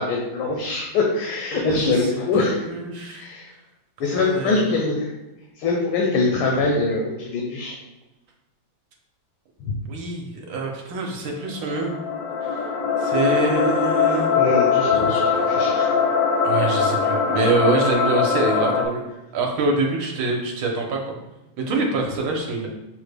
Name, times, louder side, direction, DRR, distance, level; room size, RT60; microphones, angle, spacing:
voice 1, 0.0-2.6 3.1-3.5 4.0-5.1 5.6-7.8 9.6-9.8 14.1-16.1, left 3 dB, 90° left, -1 dB, 1.5 m, -23 dB
voice 2, 1.5-1.8 2.6-3.2 4.0-4.7 9.8-11.9 12.4-12.7 13.0-14.3 15.1-15.5 16.4-19.0 19.3-21.1 21.6-22.7, right 3 dB, 75° right, 0 dB, 1.4 m, -25 dB
sound 1, 11.4-18.9, left 6 dB, 75° left, 0.9 m, -21 dB
6.2 x 2.1 x 3.3 m, 1.0 s
omnidirectional pair, 2.2 m